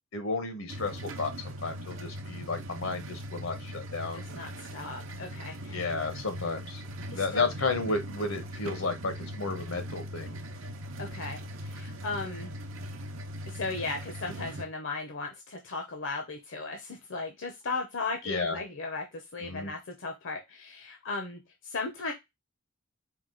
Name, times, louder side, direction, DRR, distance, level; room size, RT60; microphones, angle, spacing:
voice 1, 0.1-4.2 5.7-10.4 18.2-18.6 19.4-19.7, left 3 dB, 85° left, 7 dB, 1.1 m, -33 dB
sound 1, 0.7-14.6, equal, 70° right, 0.7 m, -40 dB
voice 2, 4.1-5.9 7.1-7.5 11.0-12.5 13.5-22.1, left 3 dB, 70° left, 4 dB, 0.7 m, -36 dB
4.6 x 2.3 x 3.8 m, 0.20 s
head